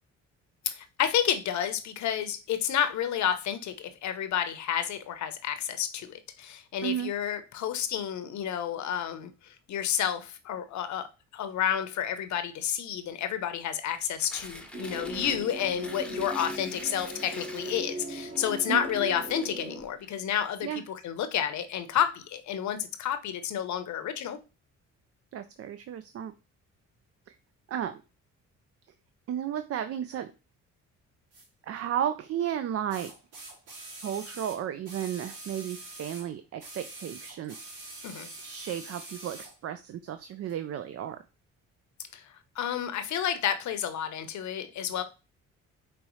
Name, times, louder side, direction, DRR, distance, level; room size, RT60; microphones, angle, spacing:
voice 1, 0.7-9.3 9.7-11.1 11.3-24.4 38.0-38.3 42.1-42.2 42.6-45.0, left 9 dB, 70° left, 0.8 m, -30 dB
voice 2, 6.8-7.1 18.7-18.9 20.6-20.8 25.3-26.3 27.3-27.4 27.7-28.0 29.3-30.3 31.6-33.1 34.0-37.6 38.4-41.2, right 10 dB, 55° right, 0.5 m, -33 dB
Tearing, 13.8-20.1, left 1 dB, 5° left, 0.8 m, -46 dB
sound 1, 14.7-19.8, right 1 dB, 35° right, 1.4 m, -39 dB
sound 2, 31.3-31.5 32.9-36.3 36.6-39.6 40.5-40.6, right 2 dB, 90° right, 1.9 m, -45 dB
5.2 x 3.1 x 3.0 m
cardioid pair, 90°, 30 cm